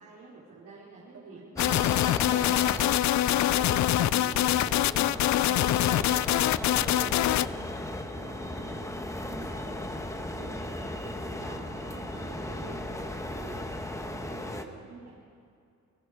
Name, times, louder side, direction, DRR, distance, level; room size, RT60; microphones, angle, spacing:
voice 1, 0.0-2.8 3.4-5.2 6.5-15.2, right 4 dB, 70° right, -7 dB, 4.3 m, -48 dB
voice 2, 1.1-1.4 3.5-3.8 4.2-4.4 4.8-4.9 5.2-6.3 6.6-6.9, right 4 dB, 50° right, -1 dB, 7.2 m, -51 dB
sound 1, 1.6-7.5, left 14 dB, 70° left, 0.5 m, -24 dB
sound 2, 1.6-14.6, left 1 dB, 10° left, 1.6 m, -37 dB
Mechanisms, 1.8-12.6, right 4 dB, 25° right, 1.3 m, -51 dB
29.5 x 18.5 x 5.1 m, 2.5 s
cardioid pair, 90°, 30 cm